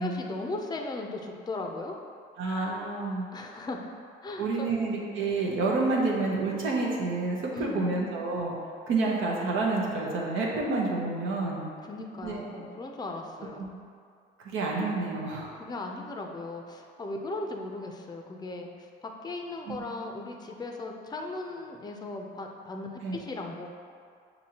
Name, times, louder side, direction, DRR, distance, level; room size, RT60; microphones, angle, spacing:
voice 1, 0.0-1.9 3.3-3.8 4.2-4.7 7.5-7.9 11.8-13.7 15.5-18.7 19.0-23.7, left 2 dB, 20° left, 2 dB, 0.5 m, -37 dB
voice 2, 2.4-3.3 4.4-8.6 8.9-11.7 12.2-12.6 13.6-13.7 14.4-15.5 19.7-19.8 23.0-23.2, right 3 dB, 85° right, -3 dB, 0.9 m, -29 dB
6.9 x 2.7 x 2.8 m, 2.2 s
cardioid pair, 90°, 20 cm